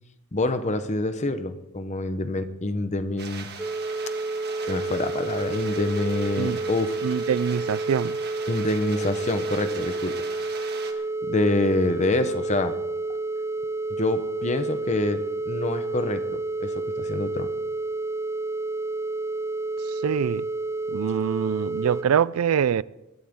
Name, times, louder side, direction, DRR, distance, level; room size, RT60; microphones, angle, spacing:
voice 1, 0.3-3.5 4.6-7.0 8.5-10.1 10.4-10.6 11.2-12.8 14.0-17.5, left 2 dB, 35° left, 0.9 m, -26 dB
sound 1, 3.2-10.9, right 6 dB, 50° right, 1.6 m, -40 dB
sound 2, 3.6-22.0, right 3 dB, 15° right, 0.6 m, -30 dB
voice 2, 7.0-8.1 20.0-20.4 20.9-22.8, right 8 dB, 85° right, 0.4 m, -24 dB
19.5 x 13.0 x 3.7 m
head